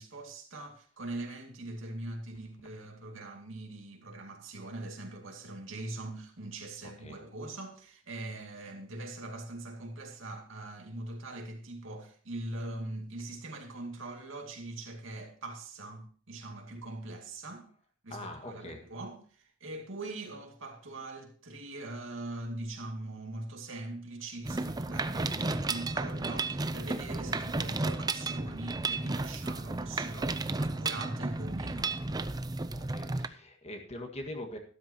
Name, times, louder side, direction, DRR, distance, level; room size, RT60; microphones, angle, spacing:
voice 1, 0.0-17.7 18.0-32.0, right 2 dB, 75° right, 2.4 m, -42 dB
voice 2, 18.1-18.8 32.7-34.6, left 1 dB, 30° left, 1.8 m, -42 dB
Mechanisms, 24.4-33.3, right 3 dB, 20° right, 0.5 m, -33 dB
13.0 x 12.5 x 2.9 m
head